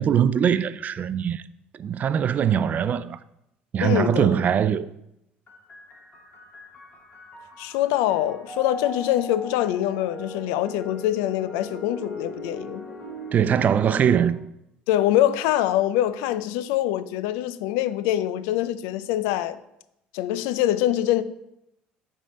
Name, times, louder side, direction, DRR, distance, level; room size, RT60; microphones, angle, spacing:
voice 1, 0.0-1.4 1.8-3.2 3.7-4.9 13.3-14.4, right 8 dB, 45° right, 0.3 m, -22 dB
voice 2, 3.8-4.4 7.6-12.9 14.9-19.6 20.1-21.2, left 13 dB, 80° left, 0.3 m, -24 dB
sound 1, 5.5-14.3, left 1 dB, 40° left, 1.7 m, -39 dB
8.3 x 3.7 x 3.7 m
supercardioid pair, 80°, 4 cm